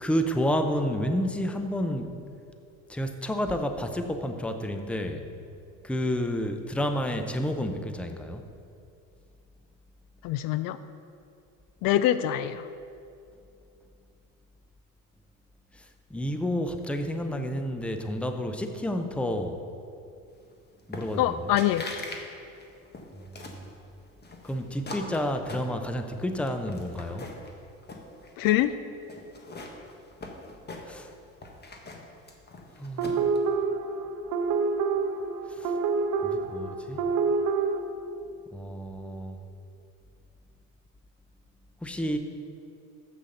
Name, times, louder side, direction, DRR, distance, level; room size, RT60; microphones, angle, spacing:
voice 1, 0.0-2.2 2.9-5.3 5.8-8.4 15.7-19.6 20.9-21.5 23.1-23.6 24.4-27.3 30.8-31.1 32.7-33.3 35.5-35.8 36.2-37.1 38.5-39.4 41.8-42.2, equal, 5° left, 6 dB, 0.6 m, -30 dB
voice 2, 10.2-10.8 11.8-12.7 21.2-21.9 28.4-28.7, left 13 dB, 55° left, 13 dB, 0.5 m, -24 dB
sound 1, 20.9-21.3 21.6-22.2 22.5-23.6 24.2-26.1 26.5-27.5 27.8-28.6 29.1-31.1 31.4-33.4, left 2 dB, 25° left, 1.4 m, -41 dB
sound 2, 33.0-37.8, right 4 dB, 55° right, 0.9 m, -27 dB
7.5 x 6.3 x 6.6 m, 2.6 s
hypercardioid pair, 85°, 40 cm